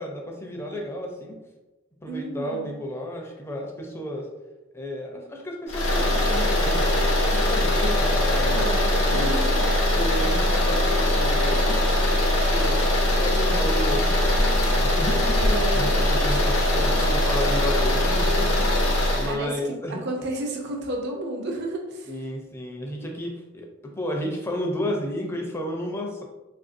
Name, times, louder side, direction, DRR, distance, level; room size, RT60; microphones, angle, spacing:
voice 1, 0.0-1.4 2.0-4.3 4.7-9.3 9.9-12.0 12.3-20.1 22.1-26.2, equal, 10° left, 1 dB, 0.4 m, -32 dB
voice 2, 2.1-2.8 8.4-9.7 15.4-16.5 16.8-17.1 19.3-22.1, right 1 dB, 55° right, 1 dB, 0.6 m, -32 dB
sound 1, 5.7-19.3, left 1 dB, 90° left, 0.7 m, -21 dB
3.3 x 2.5 x 2.5 m, 1.1 s
head